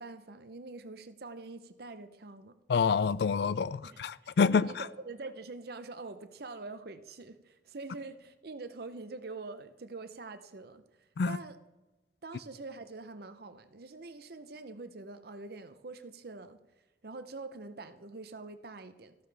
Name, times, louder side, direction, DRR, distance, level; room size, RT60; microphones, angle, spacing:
voice 1, 0.0-2.5 3.8-11.6 12.2-16.6 17.0-19.2, right 3 dB, 55° right, 0.7 m, -45 dB
voice 2, 2.7-4.8 11.2-11.4, left 5 dB, 60° left, 0.4 m, -27 dB
14.0 x 12.0 x 3.4 m
head